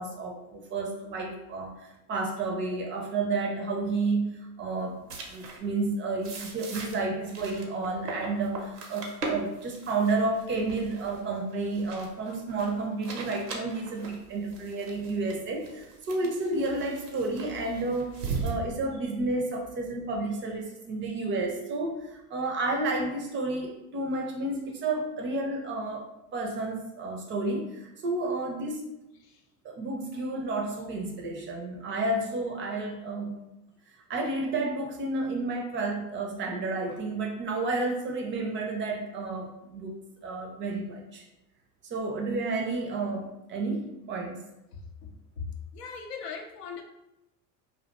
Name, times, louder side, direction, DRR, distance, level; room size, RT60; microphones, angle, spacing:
voice 1, 0.0-5.0 5.3-26.0 26.3-28.8 29.6-33.4 34.1-39.9 40.2-41.2 41.8-44.4, right 3 dB, 25° right, 2 dB, 0.4 m, -31 dB
sound 1, 5.1-5.6 6.2-18.5, right 3 dB, 85° right, 0.6 m, -39 dB
voice 2, 45.7-46.8, left 5 dB, 85° left, 4 dB, 0.5 m, -38 dB
2.4 x 2.1 x 2.8 m, 0.91 s
hypercardioid pair, 75°, 46 cm